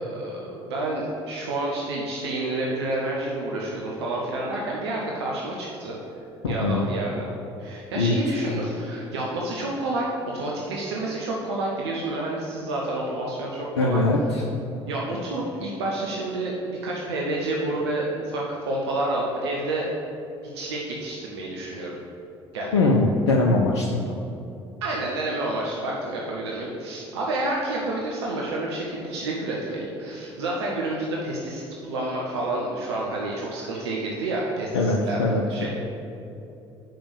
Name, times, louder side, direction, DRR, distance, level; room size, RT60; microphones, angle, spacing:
voice 1, 0.0-6.0 6.5-7.3 7.6-14.0 14.9-19.9 20.5-22.0 22.5-22.8 24.8-35.7, right 2 dB, 70° right, -3 dB, 0.9 m, -29 dB
voice 2, 6.4-6.9 8.0-8.2 13.8-14.4 22.7-24.1 34.7-35.4, left 2 dB, 75° left, -1 dB, 0.6 m, -21 dB
5.7 x 5.2 x 6.8 m, 2.7 s
figure-of-eight pair, 55°, 14 cm